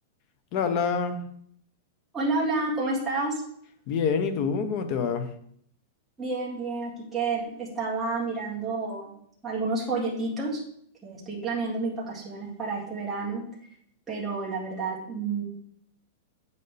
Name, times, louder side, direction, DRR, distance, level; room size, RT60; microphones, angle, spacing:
voice 1, 0.5-1.2 3.9-5.3, left 6 dB, 35° left, 9 dB, 0.9 m, -26 dB
voice 2, 2.1-3.4 6.2-9.2 9.4-10.6 11.0-13.4 14.1-15.4, right 3 dB, 5° right, -7 dB, 1.9 m, -30 dB
8.3 x 6.8 x 3.4 m, 0.66 s
supercardioid pair, 170°, 0 cm